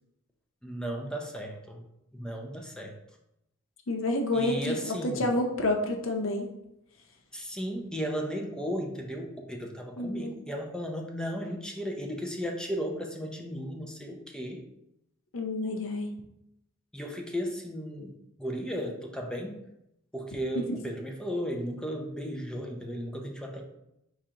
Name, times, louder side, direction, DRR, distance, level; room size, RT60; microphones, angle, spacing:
voice 1, 0.6-1.9 2.1-3.0 4.3-5.3 7.3-14.6 16.9-18.1 18.4-19.6 20.1-23.6, equal, 5° left, 1 dB, 0.5 m, -35 dB
voice 2, 3.9-6.5 10.0-10.3 15.3-16.1 20.6-20.8, left 1 dB, 65° left, 3 dB, 0.5 m, -29 dB
4.7 x 3.7 x 2.8 m, 0.84 s
head